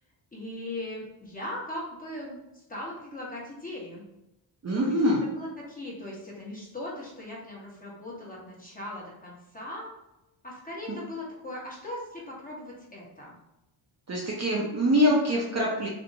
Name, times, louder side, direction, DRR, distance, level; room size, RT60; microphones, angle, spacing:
voice 1, 0.3-4.0 4.7-9.9 10.4-13.4, left 1 dB, 15° left, -5 dB, 1.0 m, -39 dB
voice 2, 4.6-5.2 10.9-11.0 14.1-15.9, equal, 35° right, -3 dB, 0.6 m, -24 dB
2.7 x 2.1 x 2.7 m, 0.90 s
cardioid pair, 70°, 50 cm